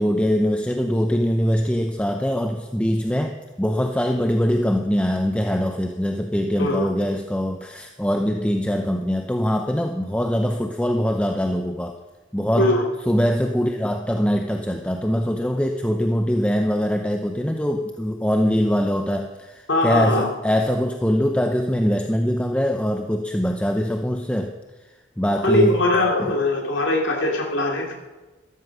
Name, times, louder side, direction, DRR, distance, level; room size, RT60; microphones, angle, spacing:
voice 1, 0.0-12.0 12.3-12.7 13.1-24.5 25.2-25.8, equal, 5° left, 4 dB, 0.6 m, -22 dB
voice 2, 19.7-20.3 25.4-27.9, left 1 dB, 85° left, 0 dB, 3.1 m, -21 dB
13.0 x 13.0 x 6.2 m, 1.2 s
head